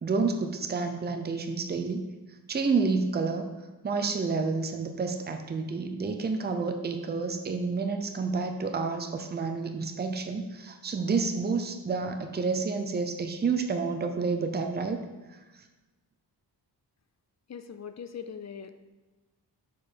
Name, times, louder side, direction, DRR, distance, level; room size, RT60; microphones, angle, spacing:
voice 1, 0.0-2.0 2.5-3.5 3.8-15.0, right 4 dB, 25° right, 6 dB, 0.5 m, -29 dB
voice 2, 17.5-18.7, left 7 dB, 40° left, 9 dB, 0.4 m, -41 dB
6.8 x 4.7 x 4.2 m, 1.2 s
wide cardioid pair, 150°, 41 cm